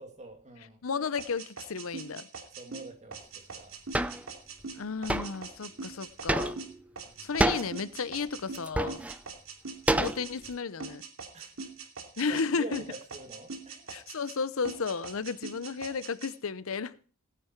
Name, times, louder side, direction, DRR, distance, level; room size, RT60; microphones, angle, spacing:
voice 1, 0.0-0.8 2.5-3.8 6.9-7.3 11.3-11.5 12.3-13.9, right 2 dB, 35° right, 2.6 m, -46 dB
voice 2, 0.8-2.3 4.8-6.6 7.2-9.0 9.9-11.0 12.2-12.8 13.9-17.0, left 5 dB, 75° left, 0.7 m, -33 dB
sound 1, 1.2-10.5 10.8-12.5 12.7-14.4 14.6-16.3, right 4 dB, 75° right, 2.6 m, -42 dB
sound 2, 3.9-4.2 5.1-5.4 6.3-6.8 7.4-7.7 8.5-9.1 9.9-10.5, right 1 dB, 5° right, 0.5 m, -27 dB
17.5 x 9.4 x 4.5 m
head